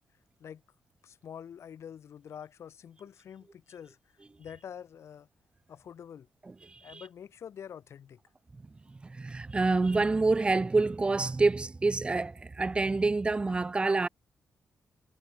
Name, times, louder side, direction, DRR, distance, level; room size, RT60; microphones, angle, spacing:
voice 1, 1.0-4.0 4.4-5.3 5.7-6.3 6.8-8.2, left 8 dB, 60° left, 4.0 m, -46 dB
voice 2, 6.7-7.0 9.0-14.1, right 3 dB, 20° right, 1.0 m, -27 dB
wide cardioid pair, 145°, 5 cm